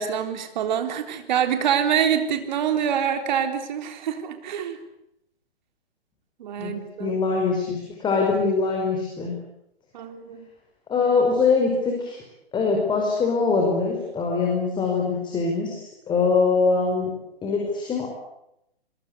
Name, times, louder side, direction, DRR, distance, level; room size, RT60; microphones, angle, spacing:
voice 1, 0.0-4.8 6.4-7.2 9.9-10.5, right 8 dB, 45° right, 7 dB, 3.9 m, -25 dB
voice 2, 7.0-9.3 10.9-12.2 12.5-17.1 17.4-18.1, left 4 dB, 15° left, 0 dB, 5.3 m, -23 dB
28.0 x 21.5 x 8.4 m, 0.82 s
figure-of-eight pair, 125°, 31 cm